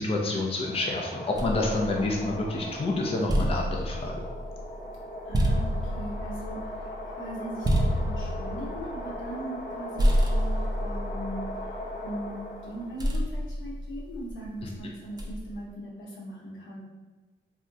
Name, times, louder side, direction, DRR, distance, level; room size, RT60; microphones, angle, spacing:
voice 1, 0.0-4.1, left 2 dB, 30° left, -1 dB, 0.5 m, -28 dB
sound 1, 0.5-13.0, left 1 dB, 50° left, 0.9 m, -39 dB
sound 2, 1.4-2.6 3.0-9.7 10.0-12.2 13.0-14.5 15.2-15.6, equal, 20° right, 0.5 m, -29 dB
voice 2, 5.2-11.4 12.0-12.4 12.6-16.8, right 1 dB, 80° left, -4 dB, 1.0 m, -39 dB
2.4 x 2.1 x 3.9 m, 1.2 s
cardioid pair, 80°, 19 cm